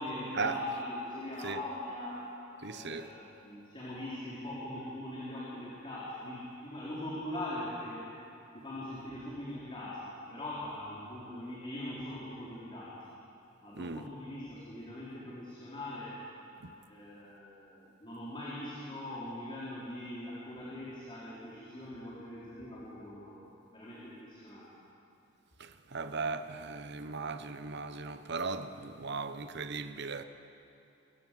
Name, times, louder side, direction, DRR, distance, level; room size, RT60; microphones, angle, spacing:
voice 1, 0.0-2.3 2.7-8.1 8.5-12.9 13.6-16.2 16.9-23.4 23.7-24.7, left 1 dB, 25° left, 4.0 m, -41 dB
voice 2, 2.6-3.1 13.7-14.0 16.6-16.7 25.6-30.2, right 4 dB, 60° right, 1.0 m, -37 dB
24.5 x 15.5 x 7.6 m
head